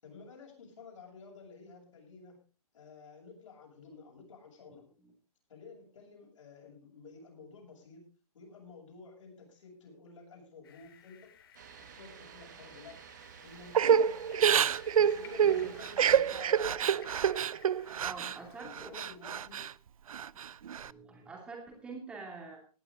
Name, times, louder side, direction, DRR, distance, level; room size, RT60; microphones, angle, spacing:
voice 1, 0.0-2.4 2.7-4.8 5.5-8.1 8.3-11.3 11.8-14.3 14.9-17.1 18.6-19.6, left 4 dB, 55° left, 0 dB, 7.5 m, -52 dB
sound 1, 10.6-18.6, left 8 dB, 40° left, 2.4 m, -57 dB
sound 2, 11.5-16.6, right 9 dB, 30° right, 1.1 m, -52 dB
Crying sobbing / Breathing, 13.7-18.4 18.7-19.7 20.1-20.9, right 8 dB, 65° right, 0.5 m, -27 dB
voice 2, 15.4-15.7 18.0-18.9 20.7-22.7, right 4 dB, 5° right, 0 dB, 2.7 m, -46 dB
18.5 x 11.0 x 3.8 m, 0.35 s
hypercardioid pair, 175°, 19 cm